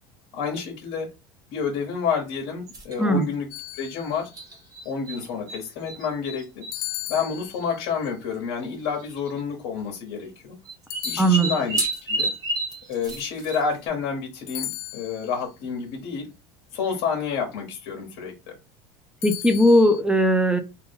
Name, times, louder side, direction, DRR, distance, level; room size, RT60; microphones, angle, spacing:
voice 1, 0.3-1.1 1.5-3.5 3.7-4.3 4.8-6.6 7.1-10.6 11.0-11.8 12.1-12.3 12.9-16.3 16.7-18.3, left 6 dB, 65° left, 1.0 m, -29 dB
sound 1, 2.7-3.0 4.3-5.6 5.9-6.8 7.8-7.9 8.0-8.1 9.1-9.4 10.7-13.9, right 2 dB, 30° right, 1.0 m, -30 dB
sound 2, 3.5-4.4 6.7-8.0 10.9-12.0 14.5-15.4 19.2-20.0, left 17 dB, 90° left, 0.4 m, -36 dB
voice 2, 11.2-11.5 19.2-20.6, equal, 5° right, 0.3 m, -18 dB
3.0 x 2.2 x 3.4 m
supercardioid pair, 130°, 12 cm